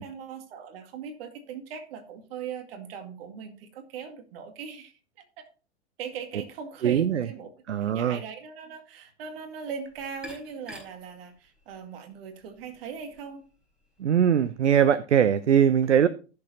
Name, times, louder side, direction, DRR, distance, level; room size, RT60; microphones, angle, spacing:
voice 1, 0.0-5.5 6.0-7.5 7.8-13.4, right 6 dB, 55° right, 6 dB, 2.2 m, -40 dB
voice 2, 6.8-7.3 7.7-8.2 14.0-16.1, right 8 dB, 85° right, 16 dB, 0.6 m, -21 dB
sound 1, 9.6-14.7, left 1 dB, ahead, 4.8 m, -51 dB
15.5 x 6.8 x 2.8 m, 0.36 s
figure-of-eight pair, 100°, 35 cm